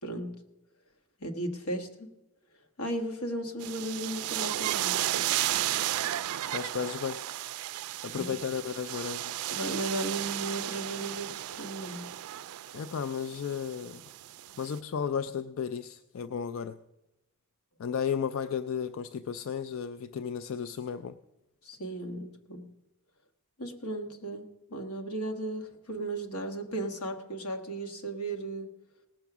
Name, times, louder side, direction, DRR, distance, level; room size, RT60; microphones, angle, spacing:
voice 1, 0.0-0.4 1.2-2.1 2.8-4.9 8.1-8.2 9.5-11.3 11.6-12.1 21.6-22.7 23.6-28.7, right 1 dB, 90° left, 4 dB, 1.4 m, -35 dB
sound 1, 3.6-14.8, right 13 dB, 85° right, 0.3 m, -34 dB
voice 2, 6.5-7.2 8.0-9.4 12.7-14.0 14.6-16.8 17.8-21.2, left 7 dB, 70° left, 12 dB, 0.4 m, -34 dB
18.0 x 6.9 x 6.0 m, 0.96 s
head